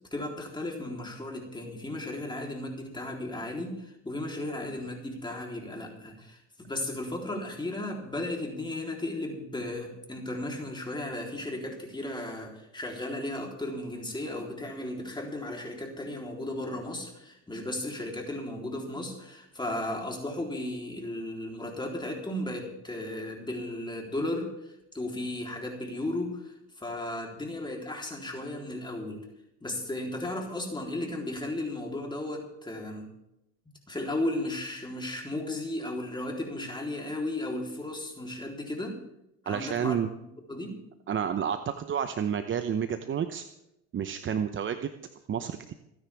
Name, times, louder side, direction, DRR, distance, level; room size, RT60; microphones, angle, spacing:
voice 1, 0.1-29.2 29.6-33.1 33.9-39.0 39.4-40.0 40.5-40.8, left 1 dB, 10° left, 0 dB, 3.7 m, -35 dB
voice 2, 39.5-40.1 41.1-43.4 43.9-44.9 45.3-45.7, right 8 dB, 35° right, 9 dB, 0.9 m, -30 dB
27.5 x 10.0 x 3.5 m, 0.85 s
supercardioid pair, 90°, 36 cm